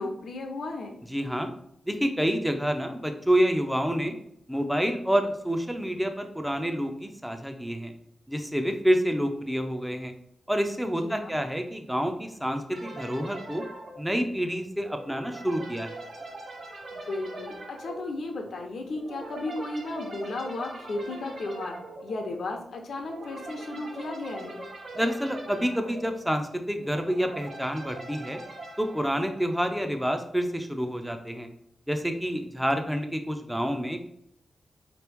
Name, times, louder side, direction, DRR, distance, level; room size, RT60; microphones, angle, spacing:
voice 1, 0.0-1.0 11.0-11.4 16.9-21.8 22.0-24.6, left 2 dB, 70° left, 3 dB, 0.7 m, -34 dB
voice 2, 1.1-1.5 1.9-4.1 4.5-7.9 8.3-10.1 10.5-13.6 14.0-16.0 24.9-28.4 28.8-31.5 31.9-34.0, equal, 5° right, 6 dB, 0.4 m, -28 dB
sound 1, 12.7-29.9, right 2 dB, 50° right, 1.1 m, -42 dB
4.4 x 3.0 x 3.4 m, 0.72 s
wide cardioid pair, 160°, 0 cm